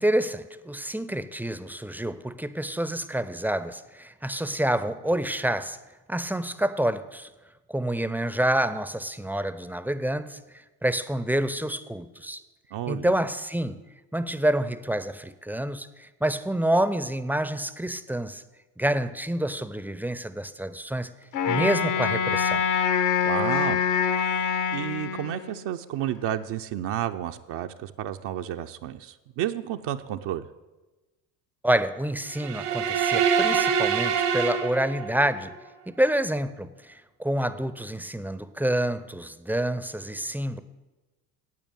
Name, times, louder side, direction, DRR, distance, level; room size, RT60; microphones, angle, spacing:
voice 1, 0.0-5.8 6.1-7.3 7.7-12.4 12.9-13.8 14.1-18.4 18.8-21.1 21.5-22.6 31.6-35.5 35.9-40.6, right 1 dB, 5° right, 14 dB, 0.6 m, -28 dB
voice 2, 12.7-13.1 23.2-23.8 24.2-30.5, right 11 dB, 55° right, 6 dB, 0.7 m, -31 dB
Wind instrument woodwind instrument, 21.3-25.7, left 7 dB, 75° left, 1.5 m, -25 dB
sound 1, 32.3-35.4, right 7 dB, 75° right, 1.6 m, -25 dB
8.6 x 8.6 x 8.9 m, 1.1 s
hypercardioid pair, 60°, 49 cm